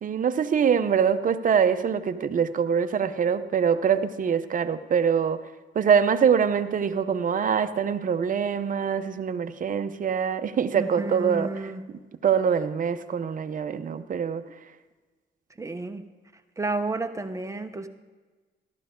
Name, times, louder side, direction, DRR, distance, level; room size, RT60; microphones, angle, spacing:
voice 1, 0.0-5.4 5.7-11.7 12.2-14.4, right 7 dB, 40° right, 9 dB, 0.8 m, -24 dB
voice 2, 10.7-11.8 15.6-16.0 16.6-17.9, right 2 dB, 15° right, 7 dB, 0.9 m, -31 dB
13.5 x 12.0 x 3.8 m, 1.3 s
cardioid pair, 90°, 20 cm